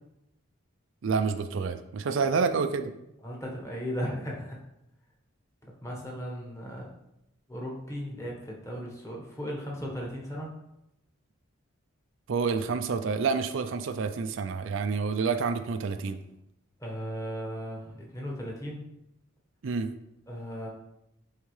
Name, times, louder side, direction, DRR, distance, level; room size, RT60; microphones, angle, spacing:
voice 1, 1.0-2.9 12.3-16.2 19.6-19.9, right 5 dB, 60° right, 8 dB, 0.4 m, -28 dB
voice 2, 3.2-4.6 5.8-6.9 7.5-10.5 16.8-18.8 20.3-20.7, equal, 15° left, -2 dB, 1.2 m, -36 dB
8.9 x 3.7 x 3.2 m, 0.86 s
head